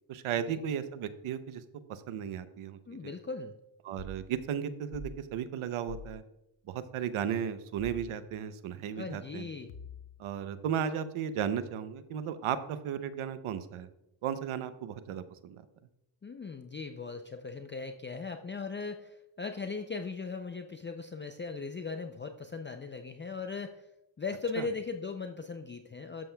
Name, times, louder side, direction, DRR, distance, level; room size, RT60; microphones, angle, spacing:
voice 1, 0.1-1.6 1.9-3.1 3.8-6.2 6.7-9.5 10.2-13.9 14.2-15.6 24.6-24.7, right 8 dB, 90° right, 12 dB, 0.8 m, -35 dB
voice 2, 2.9-3.5 9.0-9.7 16.2-23.9 24.2-26.3, left 4 dB, 25° left, 6 dB, 0.5 m, -38 dB
sound 1, 4.0-4.2 4.9-5.2 5.9-6.1 7.8-8.1 9.7-10.2, left 3 dB, 75° left, 1.0 m, -44 dB
12.5 x 7.4 x 2.3 m, 0.87 s
cardioid pair, 90°, 48 cm